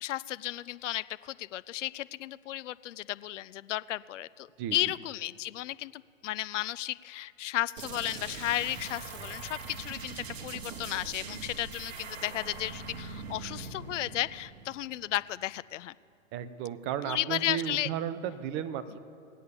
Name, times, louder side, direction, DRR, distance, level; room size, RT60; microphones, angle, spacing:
voice 1, 0.0-15.9 17.1-17.9, left 14 dB, 65° left, 18 dB, 0.5 m, -34 dB
sound 1, 7.8-15.3, right 5 dB, 55° right, 1.7 m, -42 dB
voice 2, 16.3-19.0, right 9 dB, 30° right, 10 dB, 0.8 m, -34 dB
18.5 x 8.5 x 7.0 m, 2.5 s
hypercardioid pair, 120°, 40 cm